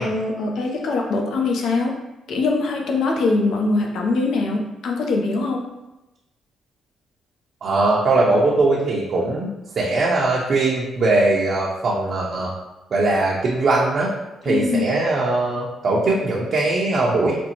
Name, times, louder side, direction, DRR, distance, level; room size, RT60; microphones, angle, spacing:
voice 1, 0.0-2.0 2.3-5.7 14.5-14.8, left 3 dB, 70° left, 1 dB, 0.6 m, -22 dB
voice 2, 7.6-12.5 12.9-14.1 14.4-17.4, right 2 dB, 50° right, -5 dB, 0.6 m, -20 dB
5.1 x 2.0 x 2.9 m, 0.99 s
cardioid pair, 90°, 0 cm